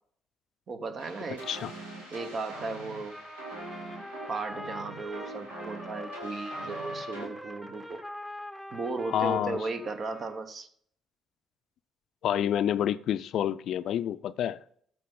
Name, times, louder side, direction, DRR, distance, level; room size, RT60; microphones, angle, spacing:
voice 1, 0.7-1.5 2.1-3.2 4.3-8.0 8.7-10.7, right 3 dB, 50° right, 1.0 m, -36 dB
sound 1, 1.0-7.3, right 1 dB, 90° right, 2.3 m, -43 dB
Trumpet, 3.1-10.4, equal, 10° right, 1.1 m, -43 dB
voice 2, 9.1-9.6 12.2-14.6, left 10 dB, 60° left, 0.4 m, -28 dB
14.0 x 5.6 x 3.8 m
hypercardioid pair, 50°, 0 cm